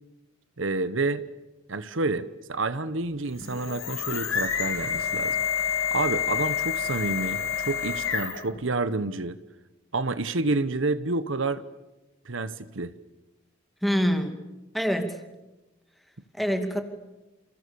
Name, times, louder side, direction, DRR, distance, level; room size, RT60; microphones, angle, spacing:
voice 1, 0.6-1.2 1.7-5.4 5.9-9.4 9.9-11.6 12.2-12.9, right 3 dB, 70° right, 14 dB, 1.1 m, -29 dB
sound 1, 3.3-8.6, left 8 dB, 85° left, 6.0 m, -28 dB
voice 2, 13.8-14.4 14.7-15.2 16.3-16.8, equal, ahead, 6 dB, 2.5 m, -25 dB
29.0 x 29.0 x 7.0 m, 1.1 s
head